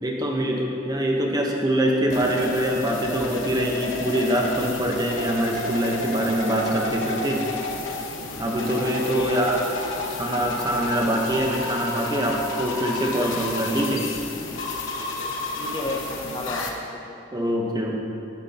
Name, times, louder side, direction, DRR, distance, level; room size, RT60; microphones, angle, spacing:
voice 1, 0.0-7.4 8.4-9.6 10.1-14.1 17.3-18.0, right 1 dB, 20° right, 0 dB, 0.9 m, -24 dB
sound 1, 2.1-16.7, left 2 dB, 65° left, 0.9 m, -31 dB
voice 2, 9.0-9.4 15.6-17.2, left 2 dB, 20° left, 0 dB, 0.5 m, -32 dB
11.5 x 8.8 x 2.8 m, 2.7 s
head